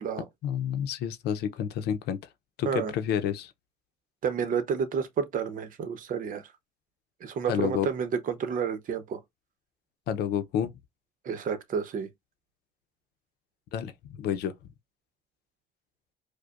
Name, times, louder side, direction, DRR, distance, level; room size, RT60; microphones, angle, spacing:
voice 1, 0.4-2.2 2.6-3.5 7.5-7.9 10.1-10.7 13.7-13.9 14.2-14.5, left 9 dB, 75° left, 0.6 m, -29 dB
voice 2, 4.2-6.4 7.2-9.2 11.2-12.1, right 6 dB, 55° right, 0.8 m, -30 dB
4.9 x 2.1 x 2.4 m
cardioid pair, 110°, 17 cm